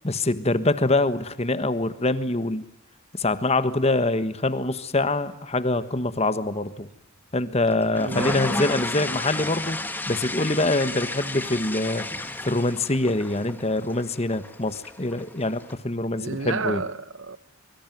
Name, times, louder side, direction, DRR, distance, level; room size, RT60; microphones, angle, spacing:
voice 1, 0.0-2.6 3.1-6.9 7.3-9.8 10.1-12.0 12.4-16.8, left 2 dB, 30° left, 1.3 m, -24 dB
sound 1, 7.7-15.7, left 2 dB, 10° left, 1.8 m, -33 dB
voice 2, 7.9-8.6 16.2-17.4, right 4 dB, 55° right, 1.1 m, -31 dB
25.5 x 24.0 x 9.3 m
head